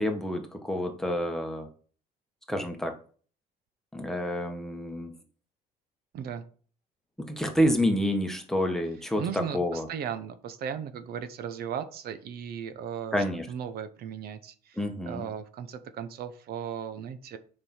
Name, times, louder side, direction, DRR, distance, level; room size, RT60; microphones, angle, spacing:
voice 1, 0.0-1.7 2.5-2.9 3.9-5.1 7.3-9.9 13.1-13.5 14.8-15.3, equal, 5° left, 3 dB, 1.5 m, -28 dB
voice 2, 9.2-13.2 13.5-14.8 15.1-17.4, right 8 dB, 65° right, 11 dB, 0.9 m, -36 dB
7.0 x 5.4 x 4.4 m, 0.43 s
cardioid pair, 110°, 17 cm